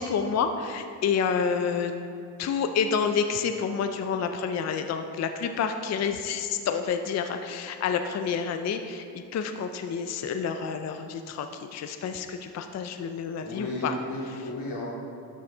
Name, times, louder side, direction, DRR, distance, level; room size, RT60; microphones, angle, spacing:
voice 1, 0.0-1.9 2.4-13.9, left 6 dB, 40° left, 7 dB, 0.4 m, -29 dB
voice 2, 13.4-14.9, left 1 dB, 90° left, -5 dB, 2.4 m, -33 dB
12.5 x 5.6 x 3.8 m, 2.5 s
cardioid pair, 130°, 41 cm